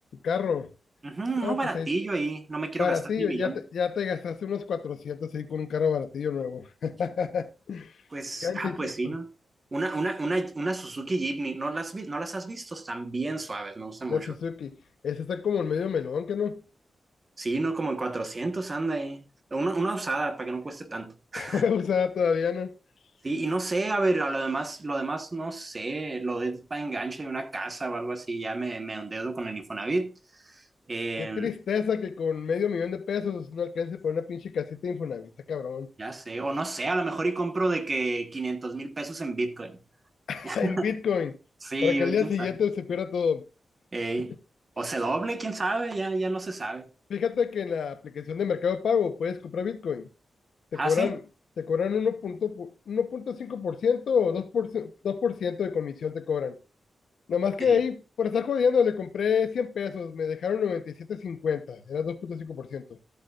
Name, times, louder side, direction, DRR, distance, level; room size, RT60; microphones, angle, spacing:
voice 1, 0.2-0.7 1.4-1.9 2.8-7.9 8.4-9.1 14.1-14.8 15.0-16.6 21.3-22.7 31.2-35.9 40.3-41.4 41.8-43.4 44.2-44.3 47.1-50.1 50.7-51.2 51.6-56.6 57.3-62.8, left 6 dB, 85° left, 1.1 m, -28 dB
voice 2, 1.0-3.6 8.1-9.3 9.7-14.3 17.4-19.2 19.5-21.6 23.2-31.5 36.0-39.8 40.4-40.8 41.6-42.5 43.9-44.3 44.8-46.9 50.7-51.1 57.6-57.8, right 2 dB, 30° right, 1.4 m, -30 dB
13.5 x 8.2 x 2.6 m
wide cardioid pair, 150°, 0 cm